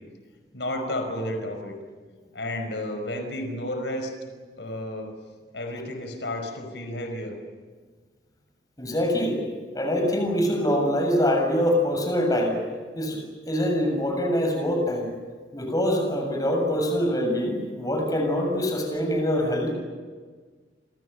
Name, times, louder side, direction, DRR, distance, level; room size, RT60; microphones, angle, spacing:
voice 1, 0.5-1.7 2.3-4.1 4.6-5.1 5.5-7.4, left 1 dB, 85° left, 5 dB, 5.4 m, -31 dB
voice 2, 8.8-9.4 9.7-12.6 12.9-13.2 13.5-15.1 15.5-19.7, equal, 20° left, 3 dB, 7.0 m, -24 dB
29.5 x 26.5 x 6.9 m, 1.5 s
head